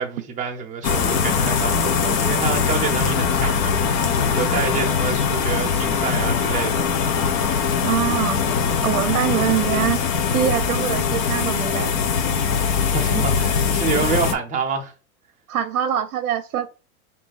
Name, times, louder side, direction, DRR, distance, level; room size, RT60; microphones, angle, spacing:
voice 1, 0.0-6.9 12.8-14.9, right 5 dB, 15° right, 0.7 m, -27 dB
morning coffee, 0.8-14.3, left 6 dB, 35° left, 0.5 m, -21 dB
voice 2, 7.8-8.4 8.8-10.0 10.3-11.9 15.5-16.7, right 11 dB, 70° right, 0.7 m, -23 dB
4.5 x 2.7 x 3.9 m
supercardioid pair, 145°, 43 cm